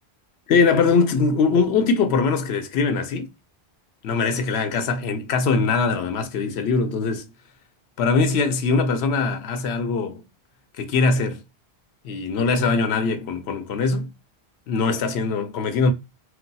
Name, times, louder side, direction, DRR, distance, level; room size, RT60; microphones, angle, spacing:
voice 1, 0.5-3.3 4.0-7.3 8.0-10.2 10.8-11.4 12.0-14.1 14.7-15.9, left 4 dB, 80° left, 0.9 m, -21 dB
2.3 x 2.3 x 3.9 m
omnidirectional pair, 1.1 m